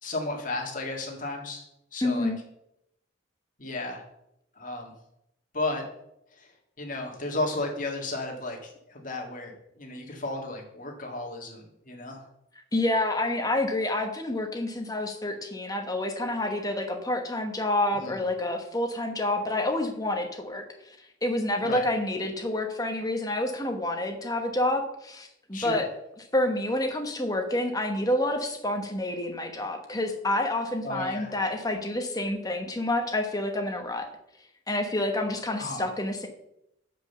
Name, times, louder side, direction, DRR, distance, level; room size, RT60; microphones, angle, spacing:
voice 1, 0.0-1.7 1.9-2.3 3.6-4.0 4.6-4.9 5.5-5.8 6.4-6.5 6.8-12.2 17.9-18.2 21.6-21.9 25.5-25.8 30.8-31.3 35.6-35.9, left 2 dB, 40° left, 0 dB, 1.9 m, -34 dB
voice 2, 2.0-2.4 12.7-21.0 21.2-25.9 26.3-34.1 34.7-36.3, left 1 dB, 20° left, 4 dB, 1.1 m, -28 dB
7.5 x 5.3 x 6.7 m, 0.80 s
head